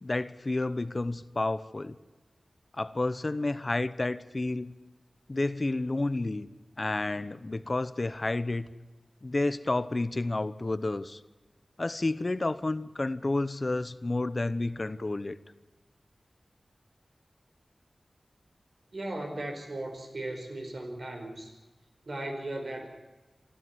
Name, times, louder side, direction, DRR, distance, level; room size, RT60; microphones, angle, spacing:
voice 1, 0.0-2.0 2.8-4.7 5.3-6.5 6.8-8.7 9.2-11.2 11.8-15.4, left 2 dB, 45° left, 14 dB, 0.9 m, -30 dB
voice 2, 18.9-21.6 22.0-22.9, right 1 dB, 65° right, 4 dB, 5.0 m, -37 dB
25.0 x 14.0 x 9.6 m, 1.1 s
wide cardioid pair, 60°, 0 cm